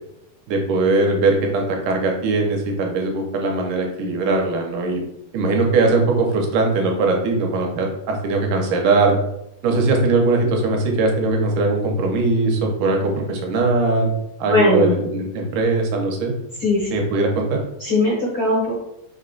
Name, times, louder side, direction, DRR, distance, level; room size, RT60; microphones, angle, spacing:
voice 1, 0.5-5.0 5.3-9.2 9.6-14.1 14.4-16.3 16.9-17.6, right 3 dB, 80° right, 1 dB, 2.2 m, -20 dB
voice 2, 14.5-15.0 16.6-16.9 17.8-18.7, left 2 dB, 70° left, -6 dB, 1.1 m, -19 dB
5.5 x 2.2 x 3.8 m, 0.82 s
omnidirectional pair, 3.7 m